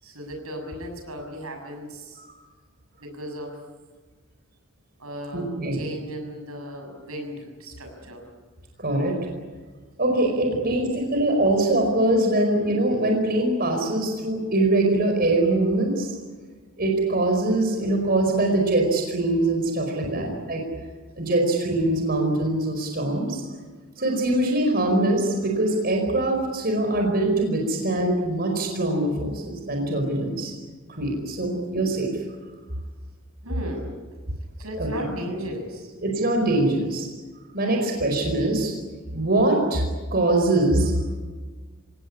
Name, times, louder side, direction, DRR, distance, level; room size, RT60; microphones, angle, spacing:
voice 1, 0.0-2.2 3.0-3.6 5.0-8.2 10.4-10.8 11.1-11.3 20.0-20.3 20.8-20.9 33.4-34.0 34.6-35.9 37.6-37.8, equal, 85° right, 3 dB, 6.8 m, -36 dB
voice 2, 5.3-5.8 8.8-9.1 10.0-16.1 16.8-20.6 21.2-23.4 24.0-30.5 30.9-32.1 34.8-34.9 36.0-37.1 37.5-38.7 39.1-39.8 40.1-40.9, right 2 dB, 45° right, 2 dB, 5.0 m, -23 dB
27.0 x 18.5 x 9.8 m, 1.4 s
head